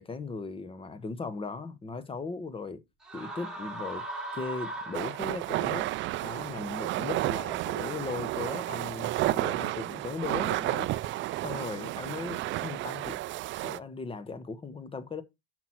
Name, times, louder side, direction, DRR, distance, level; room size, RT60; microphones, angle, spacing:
voice 1, 0.0-2.8 3.1-4.0 4.3-5.9 6.2-13.2 13.6-15.2, left 4 dB, 15° left, 1.0 m, -38 dB
sound 1, 3.0-5.7, right 2 dB, ahead, 2.7 m, -39 dB
sound 2, 4.9-13.8, right 16 dB, 40° right, 0.4 m, -32 dB
6.0 x 5.9 x 4.4 m
supercardioid pair, 100°, 31 cm